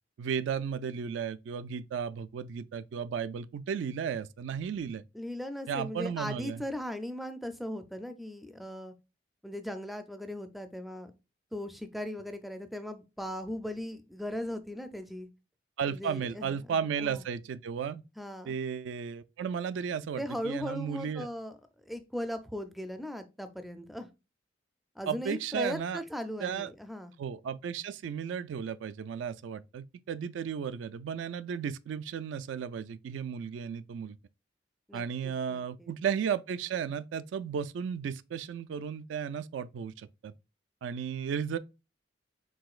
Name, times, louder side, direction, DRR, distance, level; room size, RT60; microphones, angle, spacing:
voice 1, 0.2-5.0 5.7-6.6 15.8-18.0 18.5-21.3 25.1-26.0 26.4-26.7 27.2-34.2 34.9-40.3 40.8-41.6, right 7 dB, 75° right, 0.3 m, -34 dB
voice 2, 5.1-8.9 9.4-11.1 11.5-15.3 15.9-17.2 18.2-18.5 20.2-21.6 21.9-24.1 25.0-27.2 34.9-35.9, left 1 dB, ahead, 0.4 m, -38 dB
4.8 x 3.7 x 2.4 m
head